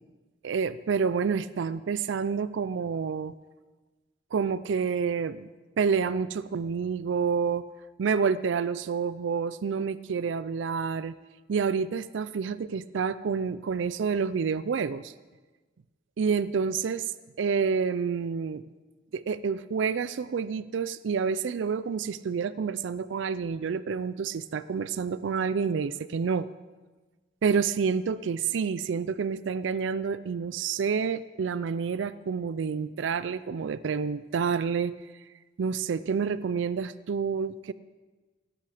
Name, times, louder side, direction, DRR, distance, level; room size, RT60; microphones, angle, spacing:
voice 1, 0.4-3.3 4.3-5.5 5.8-7.7 8.0-11.1 11.5-15.1 16.2-17.1 17.4-18.6 19.1-26.5 27.4-34.9 35.6-37.7, right 6 dB, 80° right, 16 dB, 0.4 m, -28 dB
17.0 x 11.5 x 5.0 m, 1.3 s
head